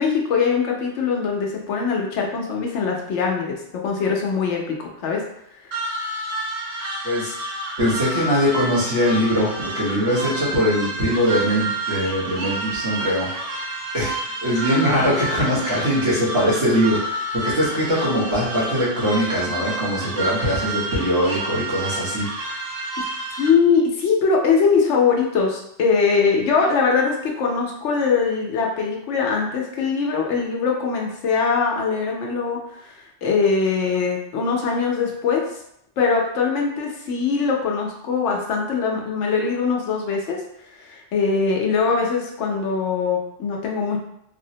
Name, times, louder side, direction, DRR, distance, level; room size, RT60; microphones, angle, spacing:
voice 1, 0.0-3.6 3.8-5.2 23.4-32.6 32.8-32.9 33.2-35.4 36.0-40.4 40.8-44.0, left 5 dB, 85° left, 0 dB, 1.0 m, -22 dB
sound 1, 5.7-23.5, right 2 dB, 60° right, 0.9 m, -29 dB
voice 2, 7.8-13.5 13.9-14.1 14.4-22.3, equal, 85° right, -8 dB, 1.6 m, -21 dB
3.8 x 2.1 x 2.7 m, 0.75 s
omnidirectional pair, 1.2 m